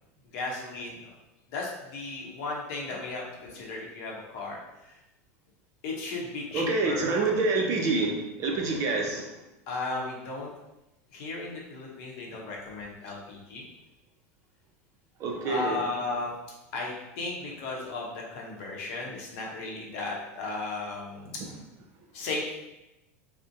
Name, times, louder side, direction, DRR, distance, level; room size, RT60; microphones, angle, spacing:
voice 1, 0.3-1.0 1.5-4.6 4.8-4.9 5.8-7.3 9.7-10.5 11.1-13.6 15.4-16.3 16.7-21.3 22.1-22.4, left 3 dB, 65° left, -2 dB, 0.7 m, -35 dB
voice 2, 6.5-9.3 15.2-15.9, right 3 dB, 45° right, 1 dB, 0.5 m, -27 dB
2.5 x 2.0 x 2.6 m, 0.94 s
hypercardioid pair, 100°, 8 cm